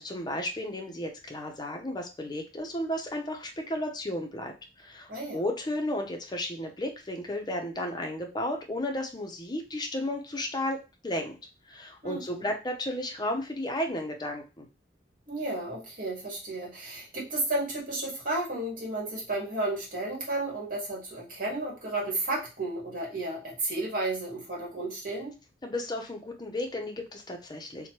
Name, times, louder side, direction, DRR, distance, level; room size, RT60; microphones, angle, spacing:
voice 1, 0.0-10.8 11.0-11.4 11.7-14.7 25.6-27.9, left 1 dB, 25° left, 3 dB, 0.6 m, -33 dB
voice 2, 5.1-5.4 12.0-12.5 15.3-25.3, right 2 dB, 50° right, -3 dB, 1.4 m, -33 dB
3.0 x 2.2 x 2.9 m, 0.29 s
head